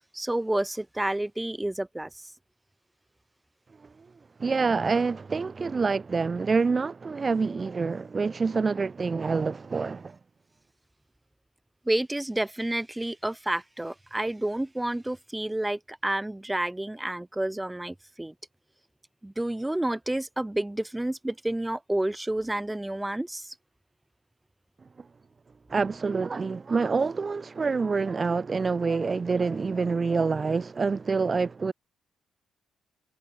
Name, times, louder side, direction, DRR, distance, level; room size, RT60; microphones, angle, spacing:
voice 1, 0.1-2.1 11.9-18.3 19.2-23.5, right 1 dB, 10° right, 4.0 m, -30 dB
voice 2, 4.4-10.2 25.7-31.7, right 4 dB, 35° right, 0.3 m, -26 dB
supercardioid pair, 60°, 0 cm